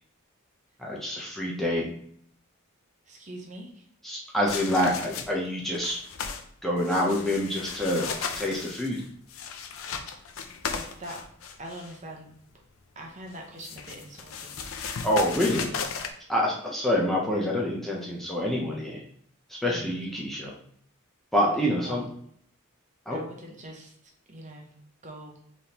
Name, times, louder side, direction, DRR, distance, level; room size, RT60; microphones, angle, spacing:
voice 1, 0.8-1.9 4.0-6.0 6.6-9.0 15.0-15.8 16.3-19.0 19.6-20.5 21.3-22.0 23.1-23.2, equal, ahead, -4 dB, 0.6 m, -27 dB
voice 2, 3.1-3.9 10.7-11.2 11.6-12.3 12.9-14.6 19.6-20.0 21.6-22.1 23.1-24.7 25.0-25.3, right 1 dB, 35° right, 1 dB, 0.8 m, -43 dB
sound 1, 4.5-5.5 5.7-6.4 6.8-12.0 13.3-16.1, left 6 dB, 70° left, 0.5 m, -36 dB
4.1 x 3.4 x 2.9 m, 0.63 s
head